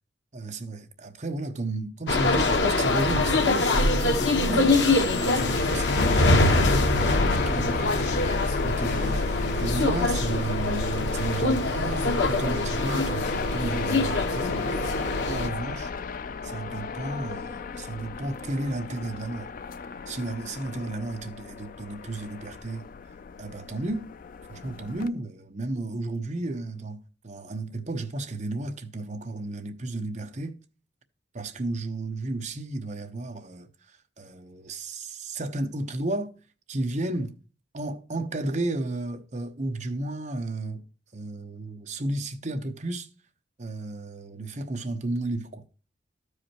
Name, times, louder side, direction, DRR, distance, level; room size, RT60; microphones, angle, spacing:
voice 1, 0.3-6.8 7.2-8.1 8.6-14.6 14.8-14.9 15.3-15.9 16.4-19.5 20.1-22.9 23.4-24.1 24.5-27.0 27.2-30.6 31.3-36.3 36.7-37.4 37.7-40.8 41.1-43.1 43.6-45.6, right 2 dB, 40° right, 1.0 m, -33 dB
sound 1, 2.1-15.5, left 2 dB, 80° left, 1.2 m, -24 dB
sound 2, 5.4-25.1, left 4 dB, 50° left, 0.4 m, -33 dB
13.5 x 4.9 x 2.9 m
head